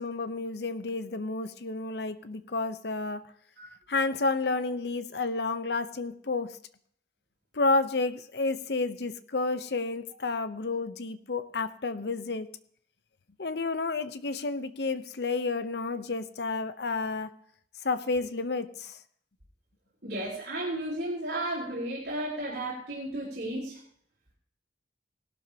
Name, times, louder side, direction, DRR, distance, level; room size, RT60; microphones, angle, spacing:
voice 1, 0.0-3.2 3.9-6.6 7.5-12.5 13.4-17.3 17.8-19.0, left 3 dB, 65° left, 12 dB, 0.8 m, -30 dB
voice 2, 20.0-23.8, right 1 dB, 65° right, -5 dB, 3.9 m, -33 dB
18.0 x 12.0 x 2.9 m, 0.62 s
head